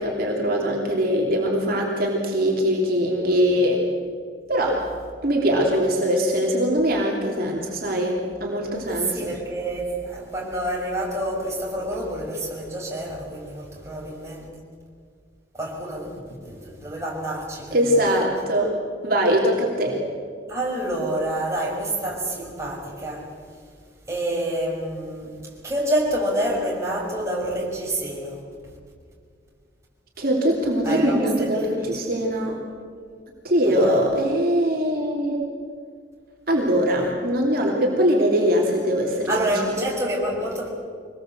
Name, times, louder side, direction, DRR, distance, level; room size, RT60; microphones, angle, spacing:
voice 1, 0.0-3.8 4.5-4.9 5.2-9.2 17.7-18.8 19.0-20.0 30.2-32.6 33.4-35.4 36.5-39.8, equal, 55° right, -1 dB, 3.1 m, -22 dB
voice 2, 8.9-14.5 15.5-18.2 20.5-23.3 24.1-25.3 25.6-28.4 30.8-32.0 33.8-34.0 39.3-40.7, right 1 dB, 15° right, -3 dB, 5.7 m, -28 dB
24.5 x 20.0 x 7.8 m, 2.1 s
head